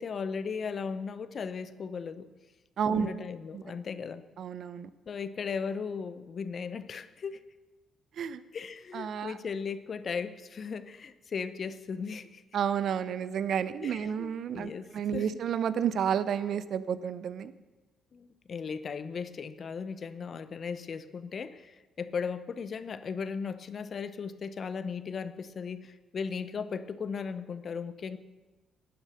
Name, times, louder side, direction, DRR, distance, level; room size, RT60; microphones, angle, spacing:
voice 1, 0.0-2.3 2.9-4.2 5.1-7.4 8.5-12.4 13.8-15.3 18.1-28.2, left 5 dB, 50° left, 13 dB, 0.7 m, -37 dB
voice 2, 2.8-3.1 3.5-3.6 4.4-4.9 8.2-8.4 8.9-9.3 12.5-17.5, right 8 dB, 65° right, 15 dB, 0.6 m, -31 dB
12.0 x 9.6 x 6.5 m, 1.2 s
cardioid pair, 90°, 0 cm